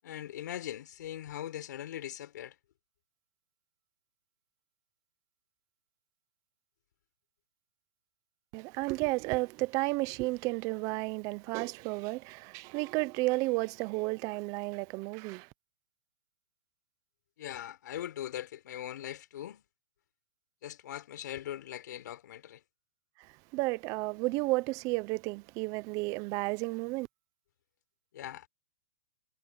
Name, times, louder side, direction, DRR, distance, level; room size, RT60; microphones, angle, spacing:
voice 1, 0.0-2.5 17.4-19.6 20.6-22.6 28.1-28.5, left 11 dB, 65° left, 4.2 m, -40 dB
voice 2, 8.5-15.5 23.2-27.1, right 23 dB, 30° right, 0.8 m, -32 dB
hypercardioid pair, 150°, 10 cm